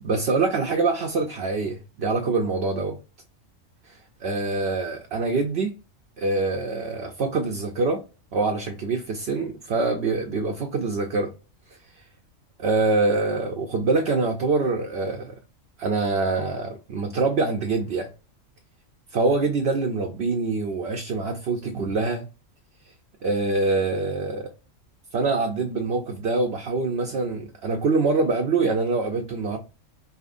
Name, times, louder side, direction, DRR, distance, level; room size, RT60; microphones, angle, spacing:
voice 1, 0.0-3.0 3.9-5.8 6.2-8.0 8.3-11.3 12.6-15.4 15.8-18.1 19.1-22.2 23.2-24.5 25.1-29.6, right 3 dB, 60° right, 0.8 m, -25 dB
5.3 x 2.8 x 2.5 m
omnidirectional pair, 1.3 m